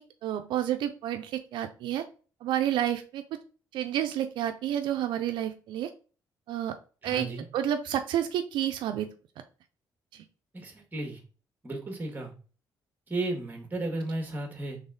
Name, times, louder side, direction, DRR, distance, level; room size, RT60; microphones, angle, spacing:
voice 1, 0.2-2.1 2.4-3.4 3.7-5.9 6.5-6.8 7.0-7.3 7.5-9.1 10.1-10.2, right 11 dB, 85° right, 7 dB, 0.5 m, -30 dB
voice 2, 7.0-7.5 10.5-11.2 11.6-12.3 13.1-14.8, right 2 dB, 25° right, 2 dB, 1.6 m, -34 dB
4.0 x 3.5 x 3.8 m, 0.37 s
cardioid pair, 95°, 8 cm